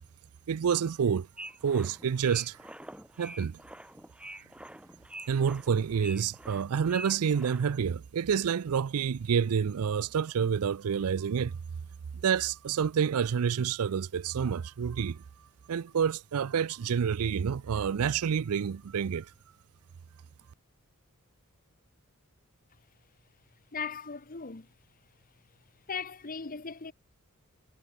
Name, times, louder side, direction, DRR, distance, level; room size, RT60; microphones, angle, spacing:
voice 1, 0.5-1.3 1.6-2.6 3.2-3.6 5.3-11.5 12.2-15.2 15.7-19.3, right 7 dB, 75° right, 0.4 m, -28 dB
sound 1, 1.4-7.9, right 1 dB, 5° right, 3.0 m, -46 dB
voice 2, 23.7-24.7 25.9-26.9, left 5 dB, 40° left, 1.2 m, -38 dB
head